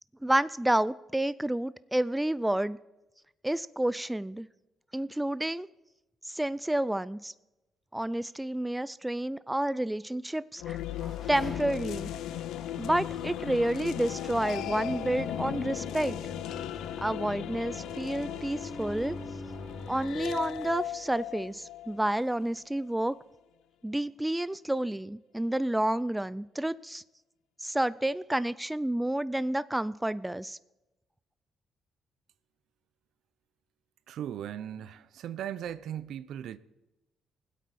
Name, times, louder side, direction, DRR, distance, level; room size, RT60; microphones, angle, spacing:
voice 1, 0.2-2.8 3.4-4.5 4.9-5.7 6.3-7.3 7.9-10.8 11.3-12.1 12.8-16.2 17.0-19.2 19.9-23.2 23.8-27.0 27.6-30.6, right 1 dB, 10° right, 0.4 m, -30 dB
sound 1, 10.6-22.7, left 11 dB, 85° left, 0.4 m, -37 dB
sound 2, 10.6-21.0, left 3 dB, 60° left, 3.8 m, -44 dB
voice 2, 34.1-36.6, right 10 dB, 75° right, 0.6 m, -38 dB
20.0 x 8.3 x 4.2 m
cardioid pair, 90°, 0 cm